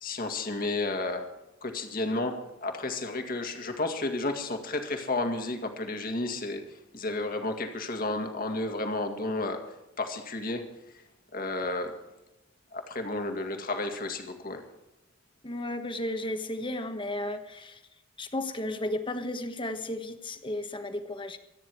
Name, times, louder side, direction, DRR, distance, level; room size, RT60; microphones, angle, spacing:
voice 1, 0.0-1.3 1.6-6.6 6.9-9.6 10.0-10.6 11.3-11.9 12.7-14.6, left 2 dB, 45° left, 5 dB, 2.0 m, -32 dB
voice 2, 15.4-17.8 18.2-21.4, left 1 dB, 25° left, 8 dB, 1.2 m, -34 dB
25.0 x 9.9 x 4.7 m, 0.96 s
head